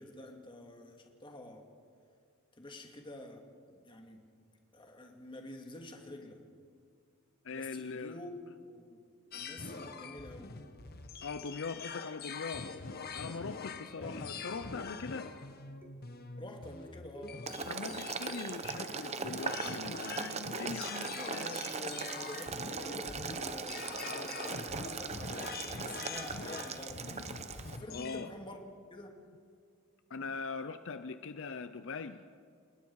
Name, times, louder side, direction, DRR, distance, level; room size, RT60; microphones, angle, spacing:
voice 1, 0.0-1.7 2.6-4.3 4.7-6.4 7.5-8.3 8.6-9.0 9.3-10.6 14.0-14.3 16.4-17.5 21.1-27.1 27.7-28.6 28.9-29.2, left 1 dB, 25° left, 3 dB, 2.3 m, -48 dB
voice 2, 7.4-8.2 11.2-12.7 13.0-15.3 17.7-21.5 27.9-28.3 30.1-32.2, left 4 dB, 65° left, 11 dB, 0.7 m, -41 dB
sound 1, 9.3-28.3, left 4 dB, 45° left, 1.2 m, -44 dB
sound 2, 11.4-12.0 13.2-13.6 14.4-15.0 15.8-16.3 17.1-17.6 18.3-19.9 21.0-21.4 22.9-23.1, right 1 dB, 10° right, 2.8 m, -56 dB
Boiling, 17.5-27.8, right 5 dB, 30° right, 1.0 m, -40 dB
29.5 x 20.0 x 4.8 m, 2.2 s
head